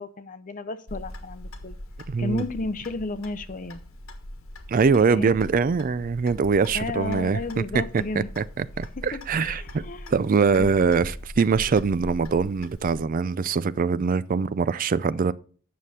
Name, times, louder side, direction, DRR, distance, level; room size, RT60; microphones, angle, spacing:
voice 1, 0.0-1.8 2.2-3.8 5.1-5.4 6.7-8.3 9.1-10.1 10.6-10.7, left 2 dB, 40° left, 0.6 m, -33 dB
Clock, 0.9-13.0, left 1 dB, 90° left, 1.5 m, -41 dB
voice 2, 2.1-2.4 4.7-7.8 8.2-9.8 10.1-15.3, right 5 dB, 40° right, 0.4 m, -23 dB
9.3 x 6.6 x 4.2 m
head